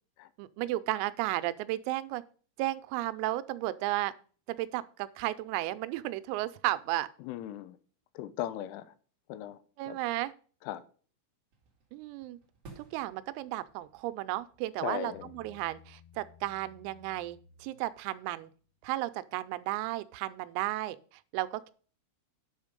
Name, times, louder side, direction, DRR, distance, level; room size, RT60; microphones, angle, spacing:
voice 1, 0.4-2.2 2.6-4.1 4.5-7.1 9.8-10.3 11.9-12.4 12.8-18.5 18.8-21.0 21.3-21.7, right 16 dB, 85° right, 3.3 m, -34 dB
voice 2, 7.2-7.8 8.1-8.9 9.3-10.0 10.6-10.8 14.8-15.3, left 12 dB, 80° left, 3.1 m, -38 dB
sound 1, 11.5-16.8, right 3 dB, 45° right, 2.2 m, -58 dB
Bass guitar, 15.1-18.5, left 7 dB, 35° left, 3.8 m, -58 dB
10.0 x 6.3 x 5.2 m
omnidirectional pair, 6.0 m